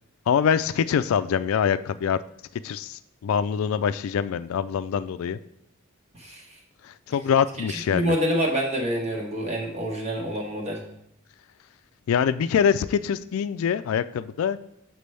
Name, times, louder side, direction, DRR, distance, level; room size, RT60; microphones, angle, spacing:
voice 1, 0.3-2.2 2.6-5.4 6.8-8.1 12.1-14.6, left 7 dB, 75° left, 13 dB, 0.3 m, -24 dB
voice 2, 7.7-10.8, equal, 30° right, 1 dB, 1.2 m, -27 dB
6.7 x 6.0 x 3.2 m, 0.79 s
head